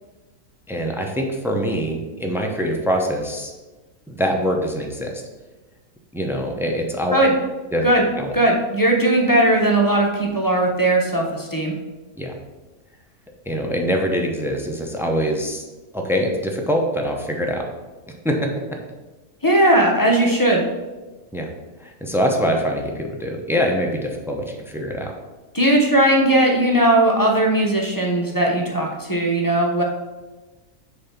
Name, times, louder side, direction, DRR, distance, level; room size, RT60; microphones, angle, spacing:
voice 1, 0.7-3.5 4.1-5.1 6.1-7.1 7.7-7.8 8.2-8.3 12.2-12.3 13.5-15.6 15.9-17.6 18.2-18.5 21.3-21.5 21.8-25.1, equal, 5° right, 1 dB, 0.5 m, -24 dB
voice 2, 8.3-11.7 19.4-20.6 25.5-29.8, right 1 dB, 15° left, -1 dB, 0.9 m, -18 dB
6.6 x 4.0 x 5.9 m, 1.2 s
omnidirectional pair, 1.5 m